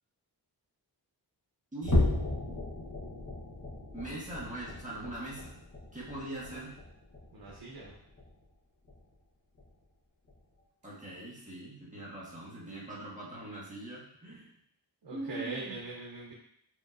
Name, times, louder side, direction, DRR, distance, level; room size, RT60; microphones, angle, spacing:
voice 1, 1.7-2.0 3.9-5.5 5.9-6.7 10.8-14.5 15.1-15.8, right 2 dB, 20° right, -6 dB, 1.4 m, -42 dB
sound 1, 1.8-8.5 8.8-9.1 9.6-9.7 10.3-10.4, left 2 dB, 45° left, 1.1 m, -35 dB
voice 2, 7.3-7.9 15.0-16.3, right 3 dB, 80° right, -4 dB, 0.9 m, -42 dB
5.2 x 3.0 x 2.5 m, 0.71 s
wide cardioid pair, 100°, 41 cm